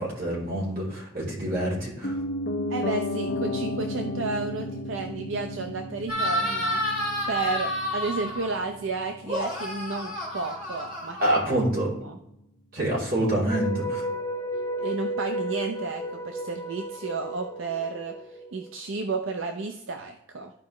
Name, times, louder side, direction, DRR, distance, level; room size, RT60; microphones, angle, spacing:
voice 1, 0.0-2.1 11.2-11.9 12.7-14.0, right 1 dB, 45° right, -5 dB, 3.2 m, -26 dB
Piano, 2.0-12.0 12.3-12.4, left 1 dB, 60° left, 1.1 m, -34 dB
voice 2, 2.7-6.8 7.3-11.4 12.0-12.2 14.8-20.5, right 3 dB, 70° right, 5 dB, 0.6 m, -32 dB
sound 1, 6.1-8.6 9.2-11.8, left 1 dB, 25° right, 3.4 m, -30 dB
sound 2, 13.5-18.7, equal, 15° left, 3.3 m, -33 dB
13.0 x 4.8 x 3.1 m, 0.80 s
head